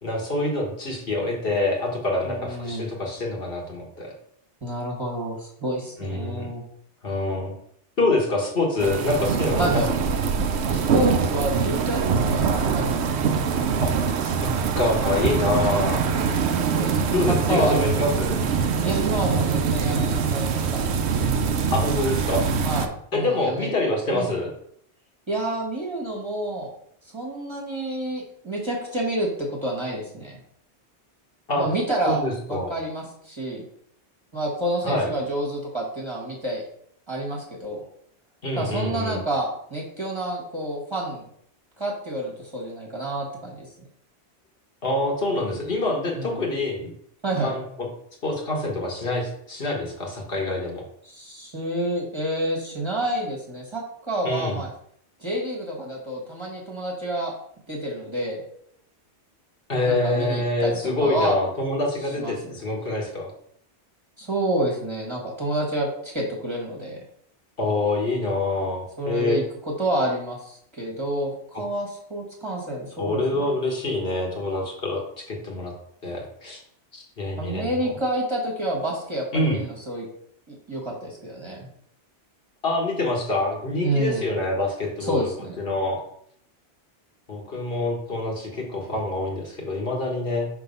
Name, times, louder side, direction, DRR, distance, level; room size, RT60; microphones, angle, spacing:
voice 1, 0.0-4.1 6.0-6.5 7.0-7.5 8.0-9.8 13.8-13.9 14.2-14.5 14.8-16.0 17.1-18.4 21.7-22.4 23.1-24.5 31.5-31.7 32.0-32.7 34.8-35.1 38.4-39.2 44.8-46.9 47.4-47.9 48.2-50.8 54.2-54.6 59.7-63.3 67.6-69.4 73.0-75.7 76.0-76.6 76.9-77.9 79.3-79.6 82.6-85.3 85.6-86.0 87.3-90.5, left 2 dB, 55° left, -1 dB, 1.6 m, -26 dB
voice 2, 2.2-2.9 4.6-6.6 9.6-9.9 10.7-13.1 15.5-15.7 16.7-17.1 17.5-17.8 18.8-20.8 22.6-23.7 24.1-24.3 25.3-26.7 27.0-30.4 31.6-32.2 32.5-33.6 34.3-36.6 37.1-37.8 38.6-41.3 41.8-43.6 46.1-46.4 47.2-47.5 51.0-53.8 54.1-54.7 55.2-57.3 57.7-58.4 59.8-61.4 62.2-62.5 64.2-67.0 69.0-73.5 77.4-80.1 80.5-81.6 83.8-84.3 85.0-85.6, right 1 dB, 25° right, -3 dB, 1.5 m, -28 dB
sound 1, 8.8-22.9, right 6 dB, 70° right, 0.9 m, -23 dB
5.8 x 3.5 x 5.4 m, 0.66 s
omnidirectional pair, 1.2 m